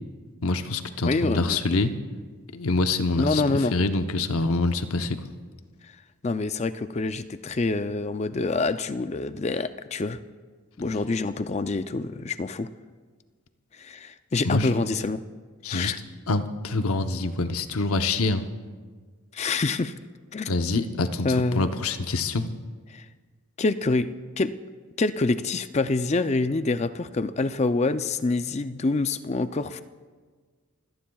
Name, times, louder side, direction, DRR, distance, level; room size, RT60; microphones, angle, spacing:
voice 1, 0.4-1.9 2.5-3.4 3.7-5.2 14.4-14.7 15.6-15.9 16.3-18.5 20.5-22.5, left 3 dB, 80° left, 8 dB, 0.8 m, -25 dB
voice 2, 1.1-1.6 3.2-3.8 6.2-10.2 10.8-12.7 13.8-15.2 15.7-16.0 19.3-19.9 20.3-20.5 21.2-21.8 22.9-23.0 23.6-24.6 25.0-29.8, left 3 dB, 30° left, 12 dB, 0.4 m, -26 dB
28.0 x 17.5 x 2.3 m, 1.5 s
head